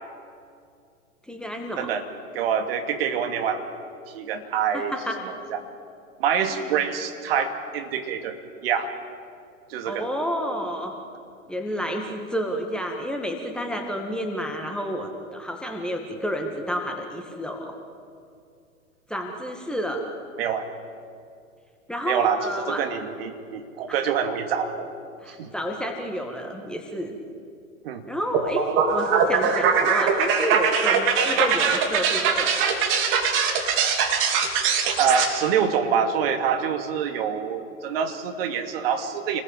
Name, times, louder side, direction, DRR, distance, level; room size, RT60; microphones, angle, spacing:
voice 1, 1.3-1.9 4.7-5.2 6.5-6.7 9.9-11.0 11.5-17.8 19.1-20.0 21.9-22.9 23.9-24.1 25.2-27.2 28.1-32.7, equal, ahead, 2 dB, 1.9 m, -30 dB
voice 2, 2.3-3.7 4.1-5.6 6.2-8.9 9.7-10.1 20.4-20.7 22.0-24.9 25.3-25.5 27.8-28.0 35.0-39.4, right 7 dB, 45° right, 5 dB, 2.7 m, -26 dB
sound 1, 28.3-35.3, right 6 dB, 30° right, 3.0 m, -22 dB
28.5 x 20.5 x 8.9 m, 2.4 s
figure-of-eight pair, 110°, 41 cm